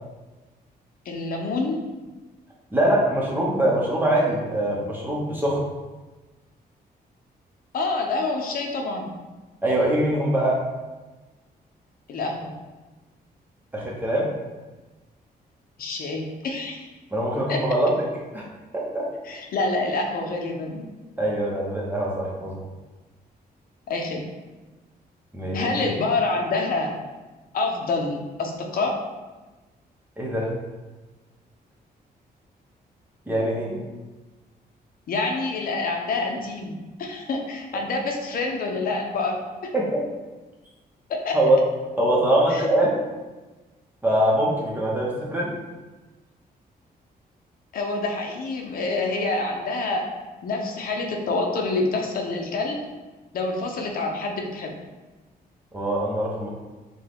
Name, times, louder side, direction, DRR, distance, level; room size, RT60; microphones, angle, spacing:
voice 1, 1.0-1.8 7.7-9.1 12.1-12.5 15.8-16.9 17.5-17.6 19.2-20.9 23.9-24.2 25.5-26.9 27.5-29.0 35.1-39.7 41.1-41.4 42.5-42.7 47.7-50.1 50.4-52.8 53.3-54.7, left 3 dB, 60° left, 1 dB, 0.8 m, -27 dB
voice 2, 2.7-5.6 9.6-10.6 13.7-14.3 17.1-17.9 18.3-18.5 18.7-19.0 21.2-22.6 25.3-25.6 30.2-30.5 33.3-33.8 39.7-40.0 41.3-41.6 42.0-43.0 44.0-45.5 55.7-56.5, right 1 dB, 10° right, -4 dB, 0.8 m, -23 dB
6.1 x 2.3 x 3.5 m, 1.2 s
wide cardioid pair, 170°, 16 cm